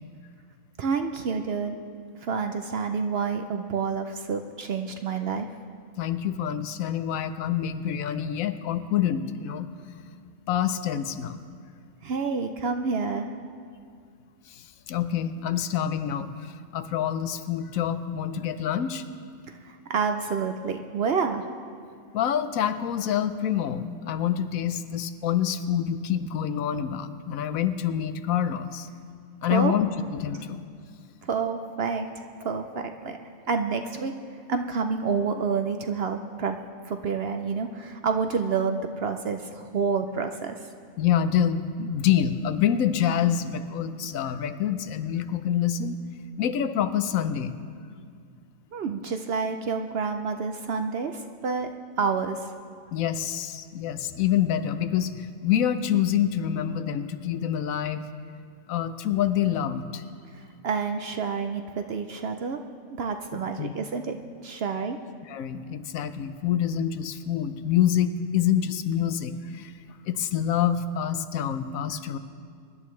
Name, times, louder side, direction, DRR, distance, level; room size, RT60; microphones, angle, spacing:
voice 1, 0.8-1.8 2.2-5.5 12.0-13.3 19.6-21.4 29.5-29.7 31.2-33.2 33.5-34.1 34.5-36.6 36.8-40.6 48.7-51.7 52.0-52.5 60.3-62.6 62.9-64.2 64.4-65.0, right 5 dB, 60° right, 6 dB, 0.7 m, -28 dB
voice 2, 6.0-9.7 10.5-11.4 14.5-19.0 22.1-28.9 29.4-30.7 41.0-46.0 46.4-47.6 52.9-58.1 58.7-60.0 63.6-63.7 65.3-69.7 70.0-72.2, left 9 dB, 80° left, 11 dB, 1.1 m, -26 dB
23.5 x 11.0 x 3.2 m, 2.2 s
omnidirectional pair, 1.4 m